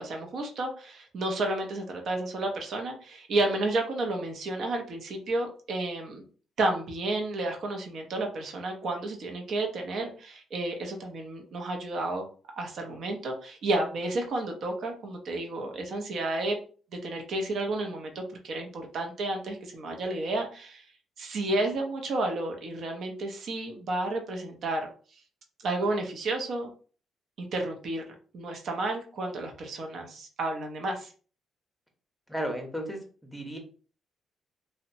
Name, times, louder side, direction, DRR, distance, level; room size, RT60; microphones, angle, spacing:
voice 1, 0.0-6.2 6.6-12.3 12.6-16.6 17.0-20.9 21.2-24.9 25.6-26.7 27.4-28.0 28.3-31.1, right 2 dB, 65° right, 3 dB, 0.6 m, -31 dB
voice 2, 32.3-33.6, equal, 5° left, 3 dB, 0.8 m, -34 dB
2.7 x 2.1 x 2.6 m, 0.40 s
cardioid pair, 90°, 0 cm